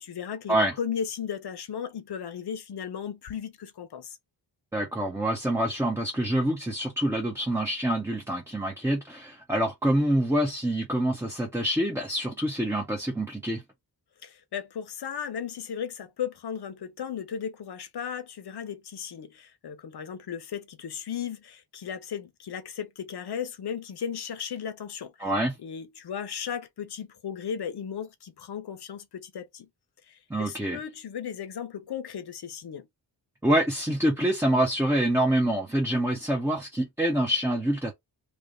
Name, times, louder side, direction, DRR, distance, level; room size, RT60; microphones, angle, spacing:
voice 1, 0.0-4.2 14.2-25.3 25.6-29.7 30.1-32.9, left 8 dB, 65° left, 0.9 m, -36 dB
voice 2, 4.7-13.6 25.2-25.6 30.3-30.8 33.4-37.9, right 1 dB, 5° right, 0.7 m, -26 dB
3.3 x 2.5 x 3.7 m
wide cardioid pair, 150°, 42 cm